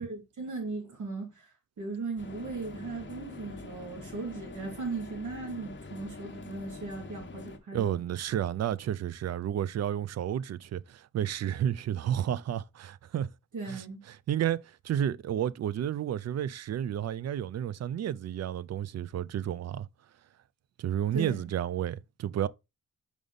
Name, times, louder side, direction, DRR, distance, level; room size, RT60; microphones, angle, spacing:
voice 1, 0.0-1.5 1.8-8.0 13.5-14.0 21.1-21.5, right 3 dB, 75° right, 2.6 m, -37 dB
sound 1, 2.2-7.6, left 3 dB, 40° left, 1.0 m, -45 dB
voice 2, 7.7-13.3 13.7-19.9 20.8-22.5, right 10 dB, 60° right, 0.4 m, -31 dB
5.2 x 4.9 x 3.9 m
wide cardioid pair, 105°, 30 cm